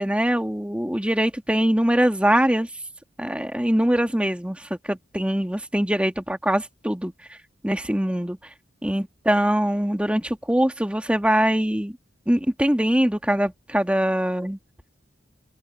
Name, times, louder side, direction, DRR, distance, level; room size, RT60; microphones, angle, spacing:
voice 1, 0.0-2.7 3.2-7.1 7.6-8.4 8.8-12.0 12.3-14.6, equal, 5° right, 1.5 m, -22 dB
open air
head